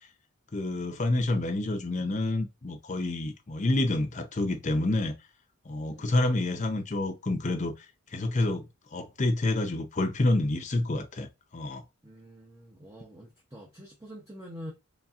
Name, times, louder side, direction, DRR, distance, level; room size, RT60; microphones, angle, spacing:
voice 1, 0.5-5.1 5.7-7.7 8.1-8.7 8.9-11.3 11.5-11.8, left 2 dB, 35° left, 0.6 m, -28 dB
voice 2, 5.9-6.6 12.0-14.7, equal, 15° right, 0.7 m, -46 dB
4.1 x 3.4 x 2.4 m
head